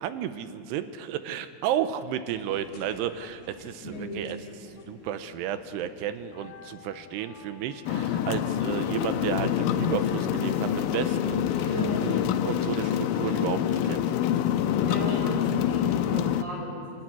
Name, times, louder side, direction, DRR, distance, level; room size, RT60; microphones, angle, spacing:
voice 1, 0.0-3.8 4.1-11.7 12.0-14.0, right 10 dB, 85° right, 11 dB, 2.9 m, -32 dB
sound 1, 2.2-13.0, left 3 dB, 55° left, 2.6 m, -50 dB
voice 2, 3.8-4.1 11.7-12.0 14.8-17.0, equal, 20° right, -3 dB, 6.7 m, -35 dB
sound 2, 7.9-16.4, left 10 dB, 85° left, 1.9 m, -26 dB
24.5 x 13.5 x 9.8 m, 2.2 s
omnidirectional pair, 4.8 m